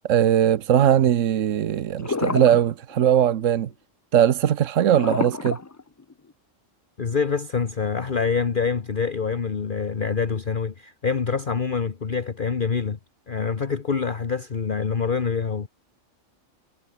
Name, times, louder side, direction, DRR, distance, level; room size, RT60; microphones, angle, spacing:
voice 1, 0.0-3.7 4.1-5.6, right 10 dB, 80° right, 1.2 m, -20 dB
sound 1, 2.0-2.6 2.9-3.2 4.9-6.3, left 3 dB, 25° left, 0.3 m, -28 dB
voice 2, 7.0-13.0 13.3-15.7, left 5 dB, 45° left, 1.3 m, -25 dB
omnidirectional pair, 1.3 m